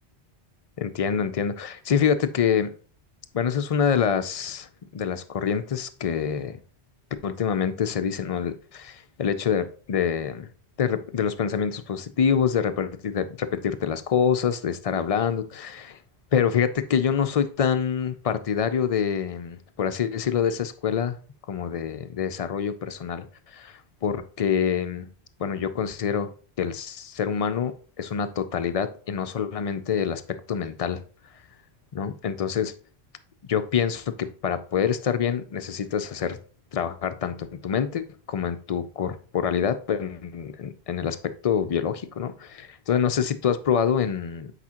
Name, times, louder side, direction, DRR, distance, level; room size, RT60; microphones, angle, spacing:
voice 1, 0.8-2.7 3.3-4.7 4.9-6.6 7.2-10.5 10.8-16.0 16.3-21.2 21.5-25.1 25.4-26.3 26.6-27.7 28.0-30.2 30.5-31.0 31.9-32.7 33.5-36.4 36.7-41.2 41.4-44.5, left 7 dB, 55° left, 0.4 m, -26 dB
8.4 x 4.9 x 2.9 m
omnidirectional pair, 1.1 m